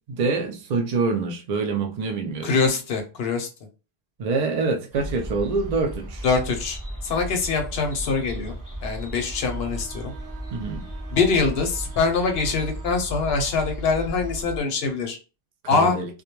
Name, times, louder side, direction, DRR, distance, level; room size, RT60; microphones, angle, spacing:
voice 1, 0.1-2.6 4.2-6.2 10.5-10.9 15.7-16.1, right 4 dB, 60° right, 0.4 m, -25 dB
voice 2, 2.4-3.5 6.2-6.8 7.0-8.5 8.8-10.1 11.1-15.2 15.7-16.0, left 4 dB, 65° left, 0.8 m, -23 dB
sound 1, 4.9-14.6, right 1 dB, 20° right, 0.7 m, -35 dB
Bowed string instrument, 9.2-13.0, right 8 dB, 90° right, 0.9 m, -48 dB
2.2 x 2.2 x 2.9 m
omnidirectional pair, 1.2 m